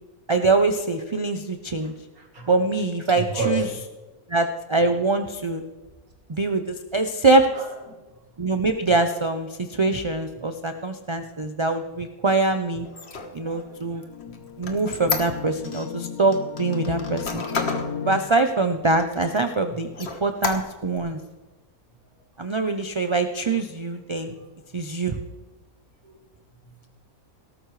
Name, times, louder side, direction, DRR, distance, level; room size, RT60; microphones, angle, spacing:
voice 1, 0.3-1.9 2.5-3.7 4.3-5.6 6.3-7.5 8.4-12.9 13.3-14.0 14.6-17.4 18.0-21.2 22.4-24.3 24.7-25.2, right 3 dB, 40° right, 7 dB, 0.4 m, -23 dB
voice 2, 2.2-2.5 3.2-3.6 7.5-7.6 13.4-14.4 26.0-26.1 26.7-26.9, right 2 dB, 75° right, 0 dB, 3.2 m, -32 dB
Squeak, 12.8-15.9 16.3-17.9 18.4-18.5 18.9-19.5 19.9-21.0, left 4 dB, 50° left, 1.5 m, -31 dB
sound 1, 13.5-18.2, left 6 dB, 80° left, 1.3 m, -35 dB
18.0 x 13.0 x 3.2 m, 1.2 s
omnidirectional pair, 1.5 m